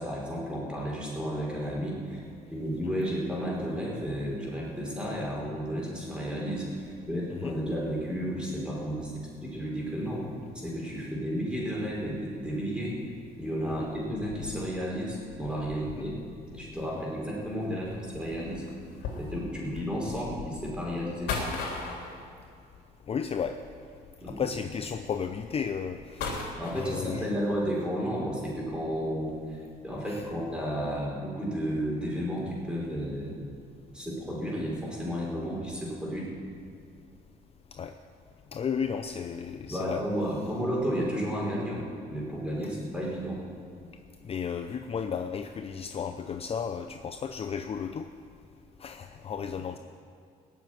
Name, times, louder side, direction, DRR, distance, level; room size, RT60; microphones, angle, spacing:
voice 1, 0.0-2.2 2.5-10.3 10.5-13.0 13.4-16.2 16.5-18.6 19.2-21.4 24.2-24.4 26.6-29.6 29.8-33.4 33.9-36.3 39.6-43.4, equal, 5° right, -4 dB, 5.1 m, -32 dB
sound 1, 13.8-27.4 28.1-30.6 30.8-31.0 31.5-31.8 32.2-32.5, left 4 dB, 80° left, 3.4 m, -41 dB
voice 2, 23.1-23.6 24.3-27.4 30.1-30.2 37.7-37.9 38.5-40.0 44.2-48.1 48.8-49.8, left 6 dB, 35° left, 7 dB, 0.6 m, -34 dB
18.5 x 7.3 x 9.3 m, 2.3 s
cardioid pair, 110°, 17 cm